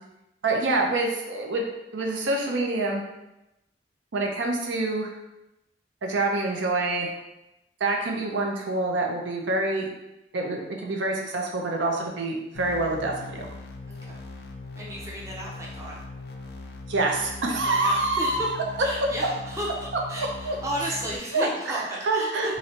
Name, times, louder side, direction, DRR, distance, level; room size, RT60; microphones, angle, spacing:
voice 1, 0.4-1.7 1.9-3.0 4.1-5.1 6.0-7.1 7.8-9.9 10.3-13.5 16.9-18.5 20.2-20.6 21.3-22.6, right 2 dB, 85° right, 1 dB, 0.5 m, -26 dB
sound 1, 12.5-21.2, left 2 dB, 60° left, 0.3 m, -40 dB
voice 2, 13.9-14.2 14.7-16.0 17.5-18.6 18.8-22.6, right 1 dB, 15° right, -4 dB, 0.5 m, -34 dB
3.1 x 2.6 x 2.7 m, 0.92 s
head